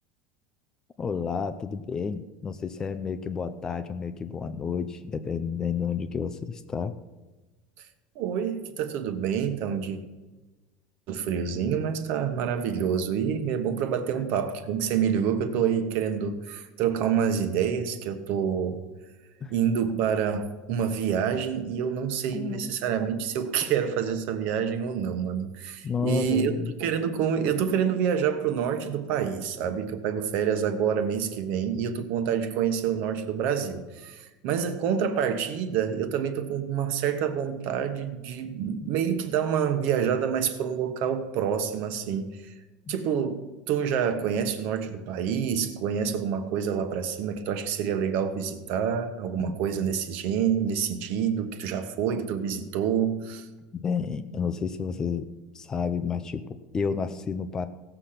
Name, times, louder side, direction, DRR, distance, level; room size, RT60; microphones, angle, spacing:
voice 1, 1.0-6.9 19.4-19.5 22.3-22.7 25.8-26.7 38.8-38.9 49.4-49.5 53.7-55.3 55.5-57.7, left 6 dB, 15° left, 11 dB, 0.5 m, -30 dB
voice 2, 8.1-10.0 11.1-18.8 19.5-26.5 26.8-42.5 42.9-43.4 43.7-53.5, right 8 dB, 45° right, 9 dB, 1.2 m, -27 dB
17.0 x 6.8 x 5.8 m, 1.2 s
cardioid pair, 170°, 4 cm